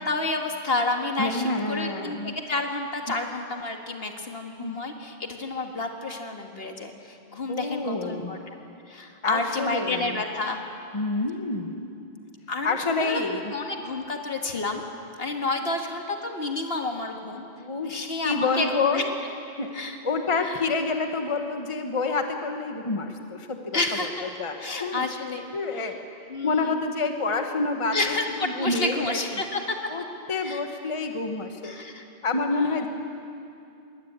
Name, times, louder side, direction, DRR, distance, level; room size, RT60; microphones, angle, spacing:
voice 1, 0.0-8.6 8.9-10.6 12.5-13.2 13.5-14.8 15.2-17.5 17.8-19.1 19.7-20.0 20.4-20.6 23.7-24.3 24.6-25.5 25.8-25.9 26.3-26.8 27.9-29.8 30.4-30.6 31.6-32.0 32.5-32.9, left 2 dB, 65° left, 3 dB, 1.9 m, -30 dB
voice 2, 1.2-2.3 4.6-4.8 7.5-8.4 9.2-10.2 10.9-11.9 12.6-13.5 17.6-17.9 18.2-19.1 19.6-19.7 20.0-24.5 24.8-25.1 25.5-26.0 26.4-29.4 29.9-31.7 32.2-32.9, left 3 dB, 30° left, 5 dB, 1.3 m, -28 dB
22.0 x 19.0 x 8.7 m, 2.6 s
omnidirectional pair, 1.1 m